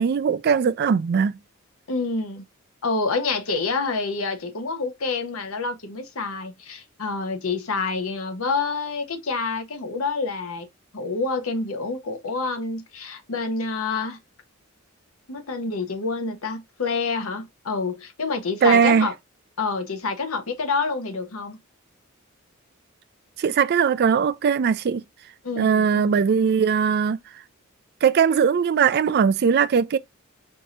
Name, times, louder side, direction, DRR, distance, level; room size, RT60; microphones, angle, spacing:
voice 1, 0.0-1.4 18.6-19.1 23.4-25.0 25.6-27.2 28.0-30.0, right 6 dB, 50° right, 0.3 m, -20 dB
voice 2, 1.9-2.4 2.8-10.7 10.9-14.2 15.3-19.1 19.6-21.6 25.4-26.1, left 4 dB, 80° left, 0.9 m, -27 dB
4.7 x 2.7 x 2.4 m
head